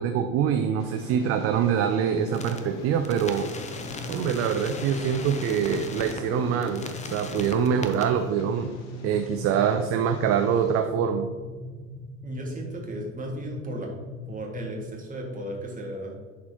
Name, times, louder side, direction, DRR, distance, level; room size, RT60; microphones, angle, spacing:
voice 1, 0.0-3.5 4.1-6.8 7.1-8.7 9.0-11.3, right 8 dB, 35° right, 7 dB, 0.5 m, -24 dB
Train, 0.8-10.8, left 2 dB, 60° left, 1.3 m, -42 dB
sound 1, 2.3-2.6 3.0-6.2 6.6-8.0, left 4 dB, 20° left, 0.6 m, -39 dB
sound 2, 3.4-14.9, left 3 dB, 70° right, 1.4 m, -40 dB
voice 2, 12.2-13.9 14.3-16.2, right 1 dB, 20° right, -1 dB, 1.9 m, -35 dB
10.5 x 4.2 x 2.9 m, 1.4 s
figure-of-eight pair, 65°, 40 cm